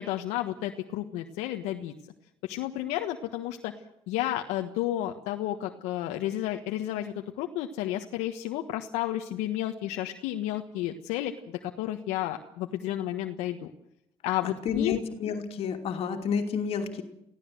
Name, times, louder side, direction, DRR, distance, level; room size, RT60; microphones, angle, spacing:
voice 1, 0.0-1.9 2.4-3.7 4.1-13.7 14.2-15.0, left 13 dB, 85° left, 5 dB, 1.4 m, -32 dB
voice 2, 14.4-17.0, left 6 dB, 60° left, 5 dB, 2.7 m, -30 dB
24.5 x 16.5 x 7.8 m, 0.81 s
cardioid pair, 100°, 11 cm